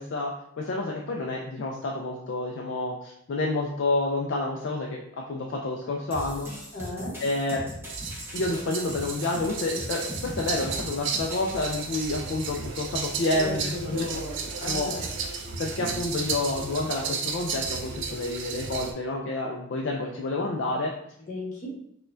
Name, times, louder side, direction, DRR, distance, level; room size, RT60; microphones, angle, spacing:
voice 1, 0.0-6.5 7.2-7.6 8.3-14.2 14.6-20.9, left 2 dB, 55° left, -1 dB, 0.3 m, -29 dB
sound 1, 6.1-11.6, equal, 10° right, 0.6 m, -39 dB
voice 2, 6.7-7.1 13.4-15.1 21.3-21.7, left 1 dB, 35° left, -5 dB, 1.0 m, -35 dB
sound 2, 7.9-18.9, right 5 dB, 55° right, 0.4 m, -33 dB
4.1 x 2.2 x 2.5 m, 0.72 s
head